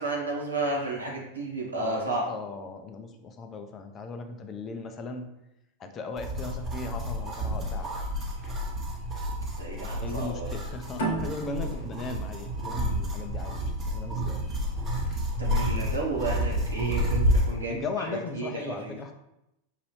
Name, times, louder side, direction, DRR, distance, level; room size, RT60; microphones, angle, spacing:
voice 1, 0.0-2.3 9.6-10.5 11.6-11.7 15.4-19.0, right 2 dB, 80° right, -4 dB, 1.1 m, -32 dB
voice 2, 1.8-5.3 5.8-8.1 10.0-14.4 17.7-19.1, left 3 dB, 25° left, 6 dB, 0.5 m, -37 dB
sound 1, 6.2-17.5, equal, 25° right, 1.0 m, -30 dB
sound 2, 11.0-14.2, right 2 dB, 55° left, 0.9 m, -35 dB
5.6 x 2.6 x 3.2 m, 0.86 s
figure-of-eight pair, 90°, 0 cm